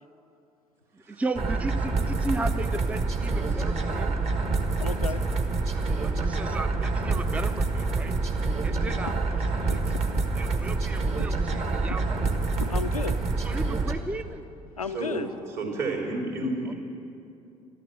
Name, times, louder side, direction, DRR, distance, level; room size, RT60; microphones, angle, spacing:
voice 1, 1.1-4.1 5.7-7.7 7.9-8.2 8.6-9.1 9.7-9.8 10.4-11.3 11.8-12.0 13.5-14.5, right 2 dB, 5° right, 12 dB, 0.5 m, -34 dB
sound 1, 1.3-13.9, right 3 dB, 35° right, 1.4 m, -27 dB
voice 2, 3.4-3.8 14.9-15.2 15.6-16.7, right 2 dB, 55° right, -1 dB, 3.6 m, -31 dB
voice 3, 4.8-5.2 6.7-7.5 7.7-10.2 10.9-11.6 11.9-13.2 14.8-15.3, left 5 dB, 85° left, 10 dB, 0.5 m, -38 dB
13.5 x 13.0 x 7.5 m, 2.7 s
figure-of-eight pair, 55°, 18 cm